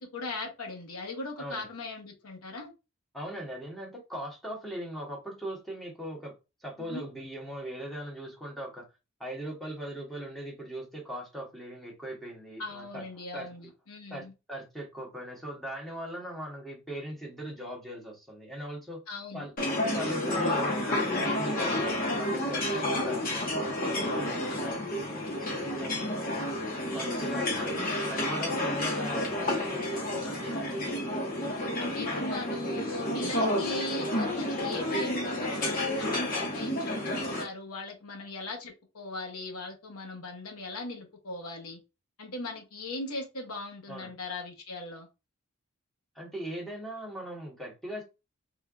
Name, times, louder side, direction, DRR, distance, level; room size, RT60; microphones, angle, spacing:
voice 1, 0.1-2.7 6.8-7.0 12.6-14.3 19.1-19.5 22.7-23.1 31.8-41.8 42.2-45.1, left 2 dB, 90° left, 1.0 m, -39 dB
voice 2, 3.1-6.3 6.6-8.8 9.2-13.0 13.3-13.5 14.1-19.0 19.3-19.5 19.9-25.9 26.9-30.9 43.9-44.1 46.1-48.0, right 1 dB, ahead, 1.2 m, -40 dB
sound 1, 19.6-37.4, left 1 dB, 40° left, 1.2 m, -30 dB
3.7 x 3.2 x 2.3 m
head